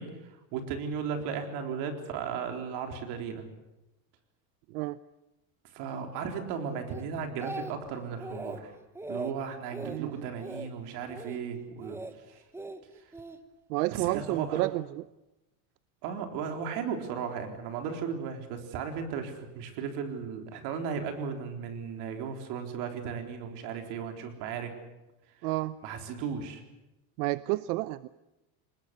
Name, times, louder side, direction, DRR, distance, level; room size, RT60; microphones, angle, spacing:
voice 1, 0.0-3.5 5.7-8.8 9.1-12.0 12.3-12.4 13.9-14.7 16.0-24.7 25.8-26.6, right 6 dB, 60° right, 5 dB, 4.0 m, -36 dB
Speech, 6.9-7.9 8.2-8.6 8.9-9.3 9.7-10.0 10.4-10.7 11.1-11.4 11.8-12.1 12.5-13.4 14.1-14.4, right 2 dB, 5° right, 1.0 m, -40 dB
voice 2, 9.8-10.2 13.7-15.1 25.4-25.7 27.2-28.1, right 19 dB, 85° right, 16 dB, 0.7 m, -30 dB
24.5 x 20.5 x 8.2 m, 0.99 s
cardioid pair, 155°, 45 cm